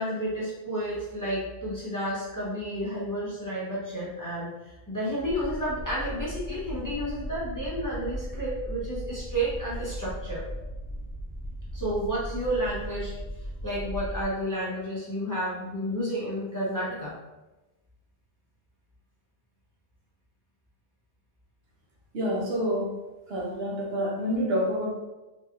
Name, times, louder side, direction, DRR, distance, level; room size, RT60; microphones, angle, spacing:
voice 1, 0.0-10.5 11.7-13.2 13.6-17.1, equal, 20° left, -8 dB, 0.7 m, -31 dB
sound 1, 5.2-14.3, equal, 5° right, 1.3 m, -37 dB
voice 2, 22.1-22.9 23.3-24.9, equal, 75° right, -2 dB, 1.1 m, -28 dB
3.4 x 3.1 x 2.4 m, 1.1 s
omnidirectional pair, 1.0 m